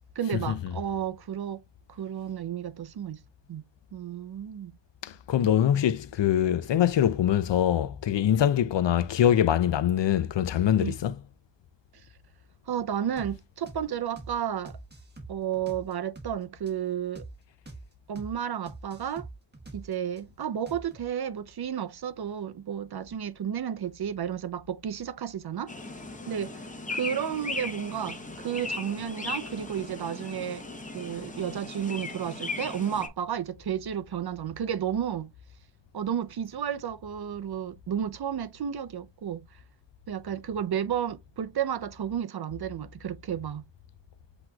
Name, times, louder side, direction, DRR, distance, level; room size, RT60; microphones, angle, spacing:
voice 1, 0.2-1.6 1.9-3.2 3.5-3.7 3.9-4.7 10.8-11.0 12.7-14.8 15.3-17.3 18.1-19.3 19.7-25.7 26.3-26.6 26.9-30.6 30.9-35.3 35.9-39.5 40.1-43.7, right 9 dB, 55° right, 0.5 m, -32 dB
voice 2, 5.0-11.2, left 10 dB, 70° left, 0.6 m, -24 dB
sound 1, 13.2-13.3 13.7-13.8 14.2-14.3 14.6-16.3 16.7-16.8 17.1-17.3 17.6-17.8 18.1-18.3 18.7-20.2 20.7-21.1, right 2 dB, 20° right, 1.4 m, -44 dB
sound 2, 25.7-33.1, left 3 dB, 15° left, 0.7 m, -37 dB
7.8 x 3.0 x 2.3 m
wide cardioid pair, 160°, 45 cm